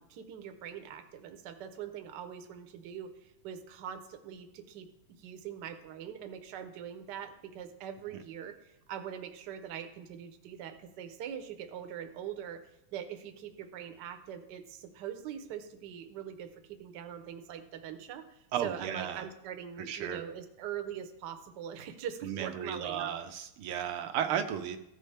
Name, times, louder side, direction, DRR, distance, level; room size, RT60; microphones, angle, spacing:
voice 1, 0.0-4.9 5.2-12.6 12.9-23.1 24.1-24.3, right 9 dB, 65° right, 8 dB, 1.2 m, -42 dB
voice 2, 18.5-19.2 19.9-20.2 22.2-24.8, right 9 dB, 80° right, 7 dB, 1.5 m, -34 dB
14.5 x 5.4 x 3.3 m, 0.87 s
omnidirectional pair, 2.4 m